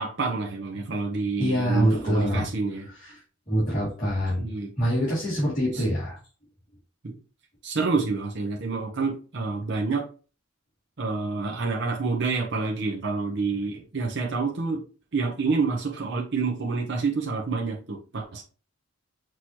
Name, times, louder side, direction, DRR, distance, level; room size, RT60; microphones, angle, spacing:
voice 1, 0.0-2.9 4.4-4.7 5.7-5.8 7.0-7.2 7.6-10.1 11.0-14.8 15.1-18.4, right 4 dB, 60° right, 0 dB, 0.8 m, -28 dB
voice 2, 1.4-2.4 3.0-3.2 3.5-4.5 4.8-6.2, equal, 40° left, -11 dB, 2.5 m, -25 dB
6.1 x 3.0 x 2.9 m, 0.37 s
head